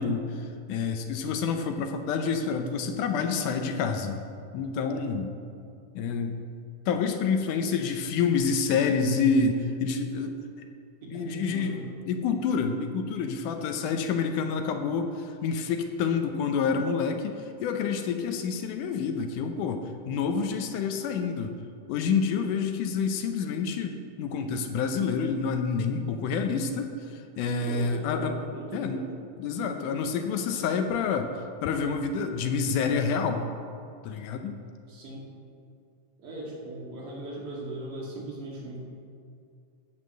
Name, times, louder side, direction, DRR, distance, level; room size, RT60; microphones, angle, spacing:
voice 1, 0.0-4.2 4.5-5.3 6.0-6.4 6.9-10.4 11.1-19.8 20.1-21.5 21.9-28.4 28.7-29.1 29.4-31.3 31.6-33.5 34.0-34.6, left 5 dB, 75° left, 6 dB, 2.2 m, -28 dB
voice 2, 11.0-11.8 27.6-29.1 34.9-35.3 36.2-38.8, right 2 dB, 70° right, -3 dB, 3.7 m, -38 dB
13.5 x 5.8 x 7.8 m, 2.4 s
omnidirectional pair, 3.8 m